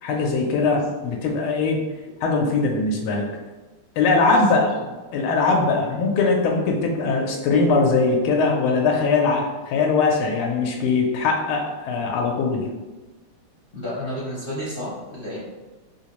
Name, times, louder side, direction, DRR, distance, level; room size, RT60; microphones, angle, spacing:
voice 1, 0.0-1.8 2.2-3.3 4.0-4.7 5.1-12.7, left 4 dB, 85° left, 0 dB, 1.4 m, -21 dB
voice 2, 4.3-4.8 5.9-6.0 13.7-15.4, left 1 dB, 45° left, -8 dB, 0.7 m, -32 dB
3.4 x 2.8 x 2.9 m, 1.2 s
omnidirectional pair, 2.3 m